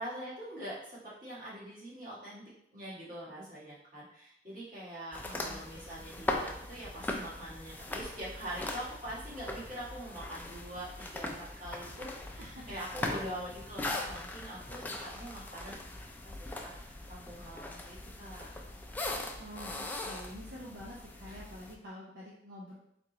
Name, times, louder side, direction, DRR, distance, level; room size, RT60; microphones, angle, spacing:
voice 1, 0.0-2.4 2.7-15.7 16.2-18.5 21.3-21.4, right 1 dB, 45° right, -7 dB, 1.5 m, -44 dB
sound 1, 5.1-21.7, left 2 dB, 10° left, 0.3 m, -40 dB
voice 2, 5.2-5.6 12.4-13.3 19.4-22.7, equal, 70° right, -5 dB, 0.7 m, -48 dB
3.8 x 3.5 x 2.9 m, 0.75 s
head